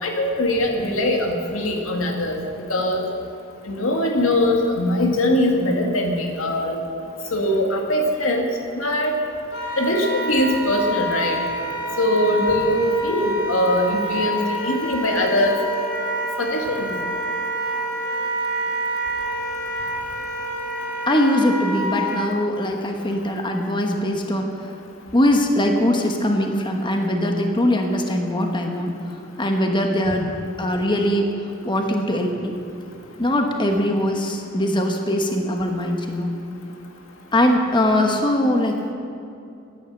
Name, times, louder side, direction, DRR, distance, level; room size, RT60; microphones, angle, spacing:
voice 1, 0.0-2.4 2.7-3.0 3.6-6.8 7.3-8.4 8.8-9.1 9.8-11.4 12.0-15.6 16.4-16.9, left 1 dB, 85° left, 2 dB, 2.2 m, -21 dB
Wind instrument woodwind instrument, 9.5-22.2, equal, 55° left, 3.2 m, -27 dB
voice 2, 21.1-24.5 25.1-30.3 30.6-31.2 31.6-32.5 33.2-36.3 37.3-38.9, left 1 dB, 25° left, 3 dB, 1.2 m, -21 dB
15.0 x 10.0 x 7.9 m, 2.6 s
head